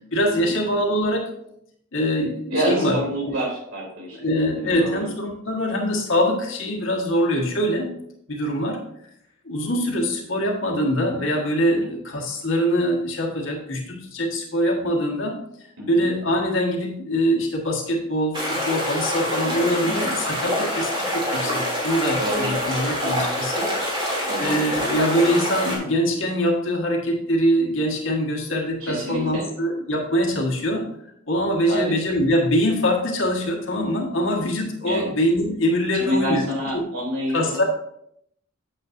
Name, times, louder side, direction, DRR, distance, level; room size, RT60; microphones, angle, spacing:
voice 1, 0.1-1.3 1.9-3.4 4.1-7.9 8.3-8.8 9.4-15.4 15.9-23.7 24.0-30.9 31.3-36.4 36.7-36.9 37.3-37.6, equal, 65° left, 0 dB, 1.5 m, -23 dB
voice 2, 2.5-5.1 11.7-11.9 15.8-16.1 19.8-20.1 22.2-22.5 24.3-24.6 28.8-29.4 31.7-32.0 34.8-35.1 35.9-37.6, right 1 dB, 75° right, -3 dB, 3.2 m, -28 dB
sound 1, 18.3-25.8, equal, 25° right, 2.7 m, -26 dB
9.1 x 7.2 x 2.6 m, 0.74 s
head